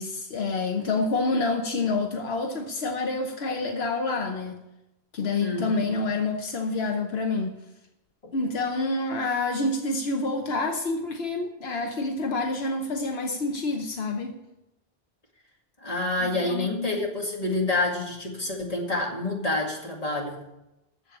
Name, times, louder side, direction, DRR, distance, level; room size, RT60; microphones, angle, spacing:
voice 1, 0.0-4.6 5.1-7.6 8.3-14.3 16.2-17.0, left 3 dB, 80° left, 4 dB, 1.2 m, -28 dB
voice 2, 5.4-5.8 15.8-20.4, left 2 dB, 35° left, -1 dB, 2.3 m, -28 dB
8.2 x 7.6 x 8.8 m, 0.91 s
omnidirectional pair, 1.0 m